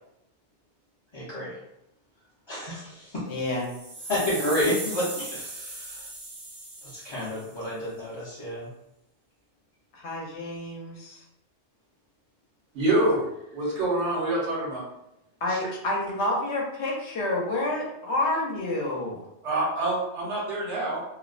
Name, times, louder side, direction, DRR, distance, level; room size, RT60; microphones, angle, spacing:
voice 1, 1.1-1.6 2.5-3.2 4.1-6.1 6.8-8.7 15.5-15.6, left 1 dB, 35° left, -9 dB, 0.4 m, -30 dB
voice 2, 3.3-3.7 9.9-11.2 15.4-19.2, left 1 dB, 75° left, -2 dB, 0.9 m, -29 dB
sound 1, 3.4-7.6, right 2 dB, 40° right, 0.5 m, -38 dB
voice 3, 12.7-13.2 13.5-14.8 19.4-21.0, right 1 dB, 80° right, -4 dB, 1.0 m, -26 dB
2.5 x 2.0 x 2.4 m, 0.84 s
omnidirectional pair, 1.2 m